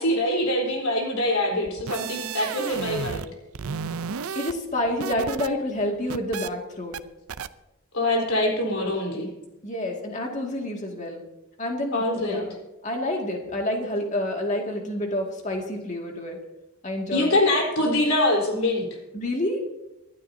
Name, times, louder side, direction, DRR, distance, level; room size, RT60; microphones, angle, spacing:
voice 1, 0.0-3.3 7.9-9.3 11.9-12.4 17.1-18.8, left 1 dB, 75° left, -1 dB, 4.0 m, -24 dB
sound 1, 1.7-3.3 3.5-5.5 5.8-6.5 6.9-7.0 7.3-7.5, right 6 dB, 80° right, 0.5 m, -33 dB
voice 2, 4.4-7.0 9.6-11.2 11.6-12.5 12.8-16.4 16.8-17.3 19.1-19.6, left 1 dB, 35° left, 1 dB, 2.1 m, -28 dB
26.0 x 12.0 x 2.8 m, 0.97 s
head